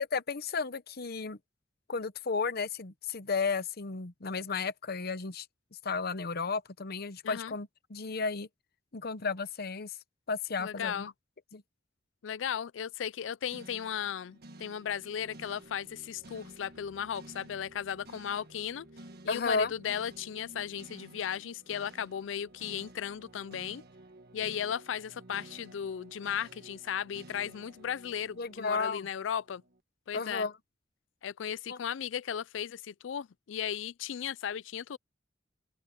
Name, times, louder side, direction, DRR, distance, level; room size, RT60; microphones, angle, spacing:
voice 1, 0.1-1.4 1.9-5.5 5.8-8.5 8.9-10.0 10.3-11.0 11.5-11.6 19.3-19.7 28.4-29.1 30.1-30.5 31.7-31.8, left 4 dB, 55° left, 0.9 m, -33 dB
voice 2, 10.6-11.1 12.2-18.9 19.2-23.8 24.3-29.6 30.1-30.5 31.2-35.0, left 8 dB, 85° left, 0.4 m, -36 dB
sound 1, 13.5-29.8, right 1 dB, 55° right, 1.4 m, -53 dB
open air
head